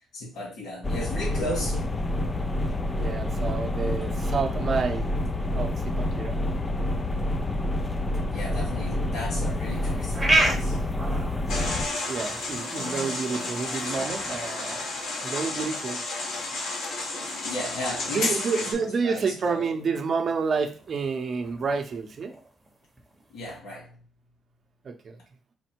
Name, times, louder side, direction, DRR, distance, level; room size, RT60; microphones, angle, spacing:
voice 1, 0.1-1.9 8.3-10.8 17.4-19.8 23.3-24.0, left 1 dB, 85° left, 2.0 m, -35 dB
sound 1, 0.8-11.9, left 1 dB, 20° left, 0.4 m, -28 dB
voice 2, 3.0-6.4 12.1-14.8 15.2-16.0 18.1-22.3 24.8-25.2, right 5 dB, 45° right, 0.7 m, -29 dB
sound 2, 9.5-23.6, right 2 dB, 10° right, 0.9 m, -34 dB
sound 3, 11.5-18.7, left 2 dB, 70° left, 1.6 m, -32 dB
4.3 x 2.1 x 4.4 m
cardioid pair, 120°, 0 cm